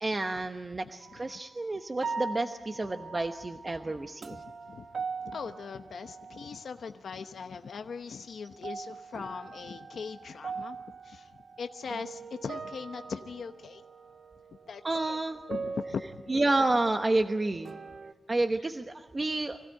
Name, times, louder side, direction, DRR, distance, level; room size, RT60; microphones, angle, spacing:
voice 1, 0.0-4.4 14.8-15.4 16.3-17.8 18.3-19.7, right 2 dB, 30° right, 6 dB, 1.0 m, -30 dB
sound 1, 1.0-1.4 2.0-6.9 7.2-8.0 8.4-18.1, right 4 dB, 70° right, 1.1 m, -42 dB
voice 2, 4.3-4.9 5.2-10.8 11.0-11.3 11.6-13.8 14.7-15.2 15.5-16.3 18.6-18.7, left 5 dB, 85° left, 7 dB, 0.9 m, -40 dB
25.5 x 16.5 x 9.1 m, 1.2 s
wide cardioid pair, 105°, 0 cm